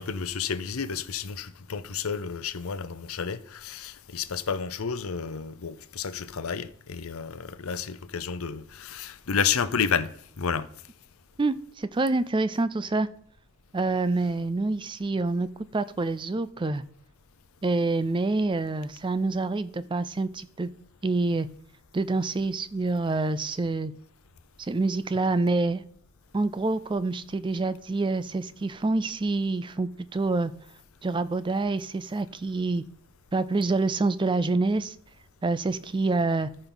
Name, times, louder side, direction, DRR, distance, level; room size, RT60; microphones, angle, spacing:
voice 1, 0.0-10.1 10.4-10.7, left 6 dB, 70° left, 0.7 m, -31 dB
voice 2, 11.4-13.1 13.7-15.5 15.7-16.8 17.6-20.7 21.0-21.5 21.9-23.9 24.6-25.8 26.3-30.5 31.0-32.8 33.3-34.9 35.4-36.5, right 3 dB, 20° right, 0.4 m, -27 dB
14.5 x 5.4 x 3.9 m
head